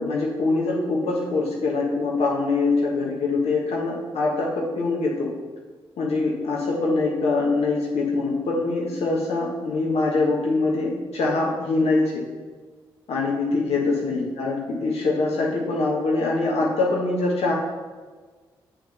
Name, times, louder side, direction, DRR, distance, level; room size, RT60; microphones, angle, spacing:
voice 1, 0.0-5.3 6.0-12.2 13.1-17.5, left 3 dB, 70° left, -3 dB, 1.4 m, -23 dB
8.1 x 3.4 x 6.5 m, 1.4 s
hypercardioid pair, 40°, 11 cm